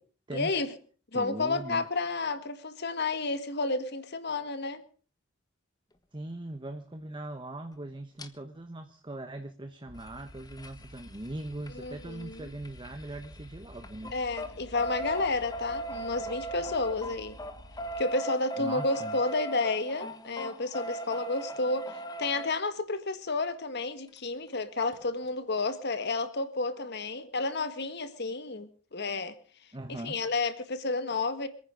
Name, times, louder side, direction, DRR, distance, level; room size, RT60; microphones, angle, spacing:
voice 1, 0.3-0.7 1.1-4.8 11.7-12.5 14.1-17.4 18.0-29.3 30.0-31.5, left 3 dB, 60° left, 10 dB, 1.7 m, -31 dB
voice 2, 1.1-1.8 6.1-14.2 18.6-19.2 29.7-30.2, right 1 dB, 25° right, 7 dB, 1.1 m, -40 dB
sound 1, 8.2-8.3 9.9-13.5 13.8-22.5 24.2-24.3 24.5-24.6 24.9-25.0, right 1 dB, 20° left, 1.4 m, -39 dB
sound 2, 9.9-18.0, right 1 dB, 45° right, 2.2 m, -51 dB
26.5 x 9.7 x 5.2 m, 0.43 s
head